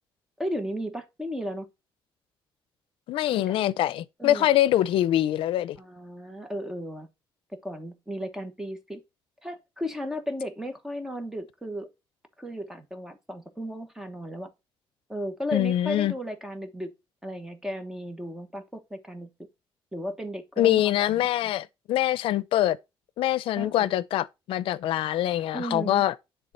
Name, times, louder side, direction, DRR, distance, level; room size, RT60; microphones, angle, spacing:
voice 1, 0.4-1.7 3.3-3.6 4.2-4.5 5.8-7.1 7.6-9.0 9.4-11.9 12.4-14.5 15.1-16.9 17.2-19.3 19.9-21.5 23.6-23.9 25.5-26.0, equal, 5° right, 1.2 m, -35 dB
voice 2, 3.1-5.8 15.5-16.1 20.6-22.8 23.2-26.1, left 13 dB, 75° left, 0.5 m, -24 dB
9.4 x 3.8 x 4.3 m
cardioid pair, 155°, 9 cm